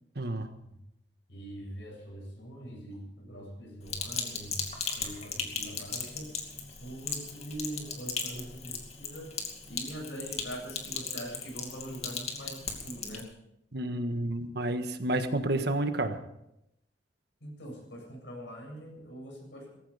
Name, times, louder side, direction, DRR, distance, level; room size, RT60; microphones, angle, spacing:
voice 1, 0.1-0.5 13.7-16.2, right 1 dB, 65° right, 8 dB, 1.5 m, -30 dB
voice 2, 1.3-4.7 4.9-6.4 6.8-13.3 17.4-19.8, equal, 75° left, 1 dB, 7.8 m, -43 dB
Sink (filling or washing), 3.9-13.2, left 5 dB, 35° left, 2.5 m, -37 dB
18.0 x 15.0 x 5.0 m, 0.82 s
head